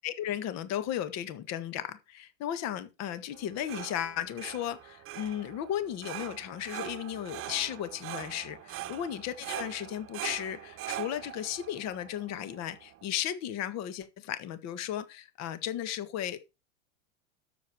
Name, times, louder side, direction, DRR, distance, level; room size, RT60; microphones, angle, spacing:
voice 1, 0.0-16.5, left 11 dB, 40° left, 1.7 m, -35 dB
sound 1, 3.3-13.1, right 14 dB, 30° right, 1.2 m, -42 dB
12.5 x 7.5 x 4.7 m
hypercardioid pair, 110°, 41 cm